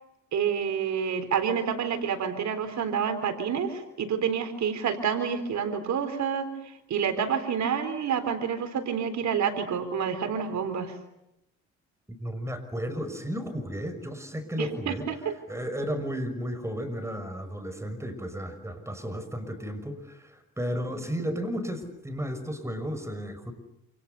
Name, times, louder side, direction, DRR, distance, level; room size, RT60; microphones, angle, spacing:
voice 1, 0.3-6.5 6.9-10.9 14.6-15.3, right 7 dB, 65° right, 8 dB, 3.9 m, -28 dB
voice 2, 12.2-15.1 15.5-23.5, equal, 10° right, 8 dB, 6.2 m, -33 dB
28.0 x 28.0 x 6.9 m, 0.86 s
cardioid pair, 90°, 30 cm